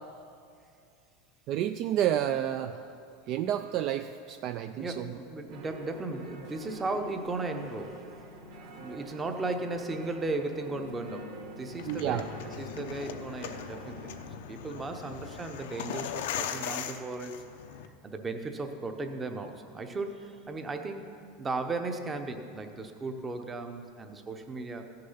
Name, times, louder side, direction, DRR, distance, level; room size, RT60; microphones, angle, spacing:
voice 1, 1.5-2.8 3.3-5.1 11.9-12.2, right 11 dB, 40° right, 9 dB, 0.3 m, -30 dB
voice 2, 4.7-8.0 8.7-14.2 14.5-17.4 18.0-21.1 21.4-24.9, right 3 dB, 15° right, 6 dB, 0.8 m, -36 dB
sound 1, 5.5-14.3, right 1 dB, 60° right, 1.4 m, -46 dB
sound 2, 11.7-17.9, left 8 dB, 85° left, 0.7 m, -39 dB
15.0 x 6.6 x 5.7 m, 2.4 s
supercardioid pair, 155°, 0 cm